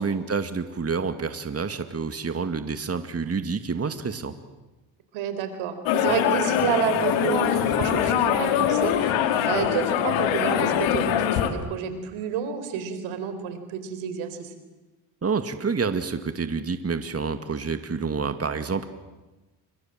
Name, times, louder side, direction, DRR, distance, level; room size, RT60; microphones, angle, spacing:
voice 1, 0.0-4.3 15.2-18.9, right 5 dB, 30° right, 8 dB, 2.3 m, -28 dB
voice 2, 5.1-14.5, right 7 dB, 85° right, 10 dB, 4.3 m, -29 dB
sound 1, 5.9-11.5, left 10 dB, 85° left, 2.7 m, -23 dB
29.5 x 26.0 x 7.7 m, 1.1 s
supercardioid pair, 70°, 46 cm